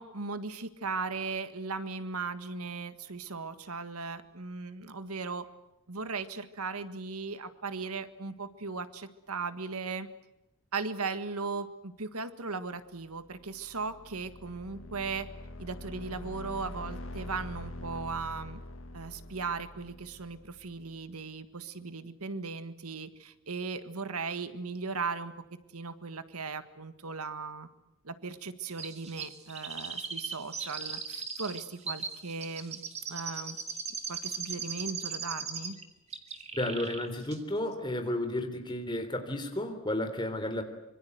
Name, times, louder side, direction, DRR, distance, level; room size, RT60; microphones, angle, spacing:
voice 1, 0.0-5.4 5.9-10.1 10.7-15.3 15.6-18.6 18.9-25.3 25.7-27.7 28.0-32.8 33.1-33.6 34.1-35.8, right 4 dB, 80° right, 12 dB, 1.7 m, -37 dB
sound 1, 13.2-21.0, left 1 dB, 60° left, 1.7 m, -44 dB
Chirp tweet, 28.8-35.8 36.1-37.1 37.3-37.4, right 5 dB, 30° right, 2.3 m, -38 dB
voice 2, 36.5-40.6, left 1 dB, 20° left, 6 dB, 3.5 m, -32 dB
25.5 x 24.0 x 8.0 m, 0.92 s
head